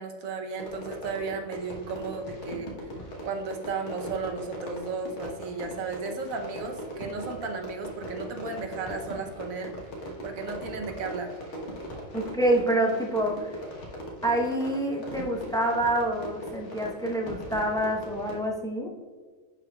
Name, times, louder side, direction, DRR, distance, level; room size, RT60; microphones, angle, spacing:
voice 1, 0.0-2.9 3.2-9.9 10.2-11.4, right 4 dB, 85° right, 4 dB, 1.3 m, -34 dB
Fireworks, 0.6-18.5, equal, 60° left, 1.5 m, -40 dB
voice 2, 12.1-13.6 14.2-18.9, right 1 dB, 5° left, -1 dB, 0.6 m, -27 dB
10.5 x 4.6 x 2.3 m, 1.5 s
omnidirectional pair, 1.4 m